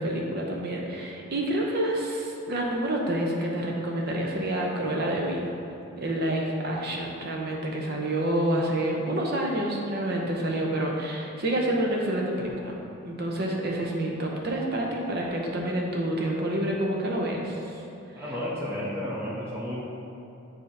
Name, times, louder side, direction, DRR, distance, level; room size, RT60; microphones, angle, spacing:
voice 1, 0.0-5.5 6.0-12.7 13.0-17.8, right 1 dB, 50° right, -1 dB, 0.8 m, -28 dB
voice 2, 16.2-16.6 18.2-19.8, left 1 dB, 10° right, -7 dB, 0.7 m, -33 dB
7.1 x 2.9 x 5.3 m, 2.7 s
head